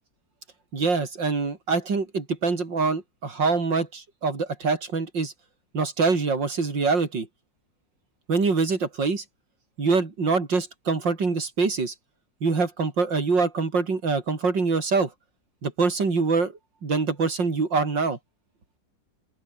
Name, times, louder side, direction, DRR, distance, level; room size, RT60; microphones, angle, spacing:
voice 1, 0.7-5.3 5.7-7.3 8.3-9.2 9.8-11.9 12.4-15.1 15.6-16.5 16.8-18.2, right 4 dB, 75° right, 4.5 m, -24 dB
open air
omnidirectional pair, 2.0 m